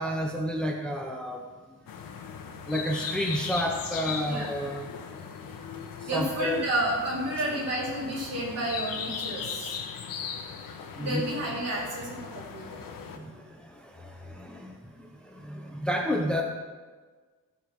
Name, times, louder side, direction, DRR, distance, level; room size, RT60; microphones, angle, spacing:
voice 1, 0.0-1.4 2.7-4.9 6.0-6.6 11.0-11.2 13.1-16.4, equal, 5° left, 1 dB, 0.7 m, -31 dB
sound 1, 1.9-13.2, left 6 dB, 85° left, 1.4 m, -38 dB
voice 2, 6.1-9.8 11.0-12.8, right 1 dB, 50° right, -5 dB, 4.1 m, -31 dB
15.0 x 5.9 x 6.3 m, 1.4 s
cardioid pair, 170°, 33 cm